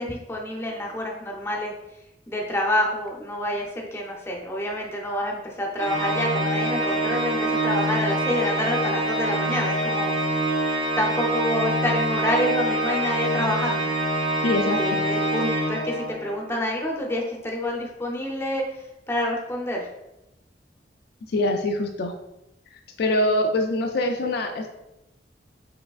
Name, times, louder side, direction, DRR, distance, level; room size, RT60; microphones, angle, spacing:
voice 1, 0.0-1.7 2.3-10.1 11.0-13.8 14.8-18.6 19.1-19.9, left 1 dB, 15° left, -1 dB, 0.6 m, -27 dB
Organ, 5.8-16.4, right 1 dB, 55° right, 1.0 m, -25 dB
voice 2, 14.4-15.1 21.3-22.1 23.0-24.7, left 1 dB, 65° left, 4 dB, 0.4 m, -24 dB
4.6 x 3.3 x 2.4 m, 0.92 s
head